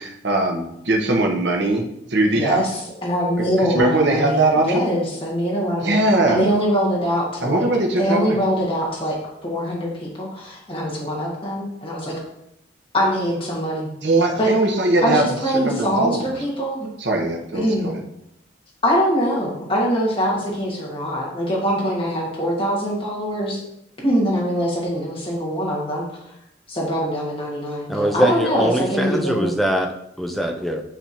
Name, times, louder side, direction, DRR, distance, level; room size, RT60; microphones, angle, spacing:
voice 1, 0.0-1.8 2.1-2.7 3.4-4.9 5.8-6.5 7.4-8.4 14.0-15.2 15.5-16.3 17.0-17.9, right 2 dB, 65° right, 2 dB, 1.0 m, -20 dB
voice 2, 2.3-5.9 6.3-7.7 8.0-12.1 12.9-13.9 14.4-14.5 15.0-16.9 17.5-17.9 18.8-23.6 24.0-26.2 26.7-29.5, equal, 30° left, -5 dB, 1.7 m, -23 dB
voice 3, 27.9-30.8, equal, ahead, 3 dB, 0.5 m, -22 dB
9.9 x 3.4 x 2.9 m, 0.80 s
head